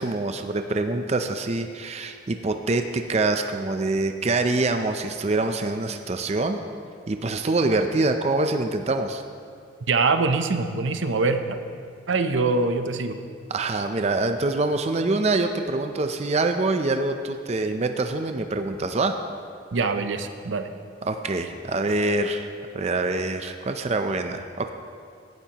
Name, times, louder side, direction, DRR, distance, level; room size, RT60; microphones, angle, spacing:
voice 1, 0.0-6.6 7.1-9.2 13.5-19.2 21.1-22.5 22.7-24.7, right 2 dB, 35° right, 6 dB, 0.5 m, -25 dB
voice 2, 9.9-11.4 12.1-13.2 19.7-20.7, right 3 dB, 80° right, 8 dB, 0.7 m, -23 dB
17.5 x 12.0 x 2.9 m, 2.2 s
head